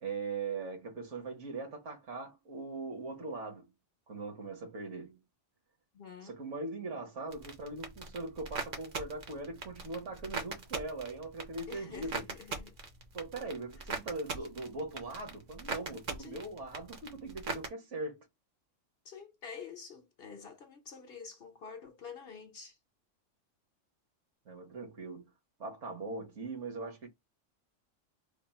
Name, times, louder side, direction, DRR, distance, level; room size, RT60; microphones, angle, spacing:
voice 1, 0.0-3.7 4.1-5.2 6.2-12.3 13.1-18.3 24.5-25.3 25.6-27.1, right 3 dB, 70° right, 1.5 m, -40 dB
voice 2, 5.9-6.3 11.7-12.8 16.2-16.5 19.0-22.8, left 6 dB, 55° left, 0.9 m, -48 dB
sound 1, 7.3-17.7, right 4 dB, 45° right, 0.8 m, -41 dB
3.5 x 2.1 x 4.1 m
omnidirectional pair, 1.3 m